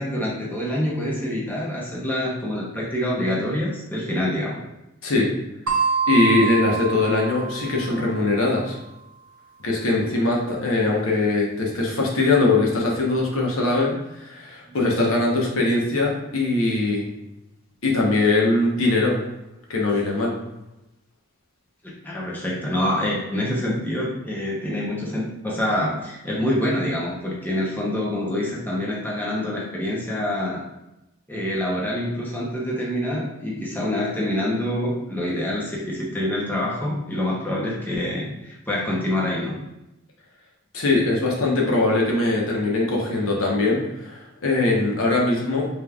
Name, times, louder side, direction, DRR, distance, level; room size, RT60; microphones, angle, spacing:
voice 1, 0.0-4.6 14.6-14.8 22.0-30.6 31.3-39.6, left 1 dB, 10° left, -4 dB, 0.8 m, -26 dB
sound 1, 5.7-8.2, right 5 dB, 85° right, 0.6 m, -25 dB
voice 2, 6.1-8.8 9.6-17.1 17.8-19.2 19.7-20.3 40.7-45.7, left 2 dB, 80° left, -2 dB, 1.0 m, -21 dB
5.1 x 3.4 x 2.4 m, 0.91 s
head